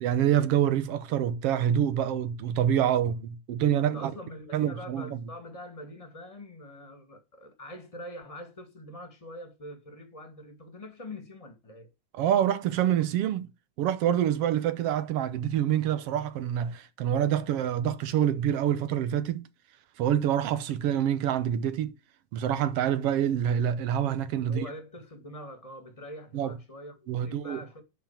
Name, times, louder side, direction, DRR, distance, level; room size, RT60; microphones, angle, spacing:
voice 1, 0.0-4.1 4.5-5.2 12.1-13.5 13.8-19.5 20.0-21.9 22.3-24.6 26.3-26.5 27.1-27.6, right 10 dB, 65° right, 1.6 m, -26 dB
voice 2, 3.8-11.9 24.5-27.8, left 1 dB, 15° left, 1.5 m, -44 dB
11.0 x 4.5 x 7.2 m
omnidirectional pair, 3.4 m